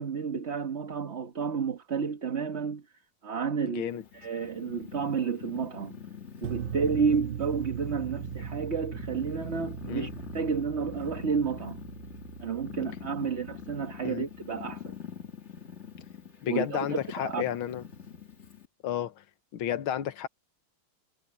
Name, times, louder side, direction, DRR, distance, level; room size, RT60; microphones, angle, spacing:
voice 1, 0.0-2.8 3.2-6.0 6.4-11.8 12.4-15.0 16.5-17.4, right 5 dB, 35° right, 1.4 m, -31 dB
Purr, 3.9-18.7, left 8 dB, 30° left, 2.2 m, -44 dB
sound 1, 6.4-14.6, right 10 dB, 85° right, 0.7 m, -40 dB
voice 2, 16.4-17.8 18.8-19.2 19.5-20.3, left 10 dB, 75° left, 1.9 m, -32 dB
omnidirectional pair, 2.3 m